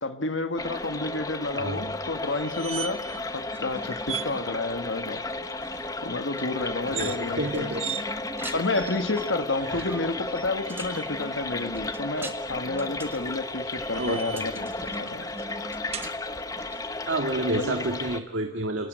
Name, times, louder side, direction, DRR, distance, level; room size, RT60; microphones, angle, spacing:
voice 1, 0.0-3.0 3.3-5.2 6.0-7.7 8.5-15.3 17.5-17.7, left 2 dB, 75° left, 7 dB, 1.6 m, -30 dB
sound 1, 0.6-18.2, left 2 dB, 20° left, 1.1 m, -34 dB
Alanis - Chapel's Gate - Cancela de la Ermita (II), 2.3-3.2 3.5-3.6 4.0-4.3 6.8-7.2 7.8-8.0 8.7-9.3 10.3-11.1 13.0-14.6 15.9-16.1, right 9 dB, 30° right, 1.1 m, -37 dB
sound 2, 3.0-17.2, right 1 dB, 10° right, 1.6 m, -44 dB
voice 2, 6.9-7.8 9.6-9.9 14.0-14.5 17.1-18.9, right 1 dB, 75° right, 4 dB, 2.0 m, -30 dB
29.0 x 18.5 x 9.4 m, 1.1 s
head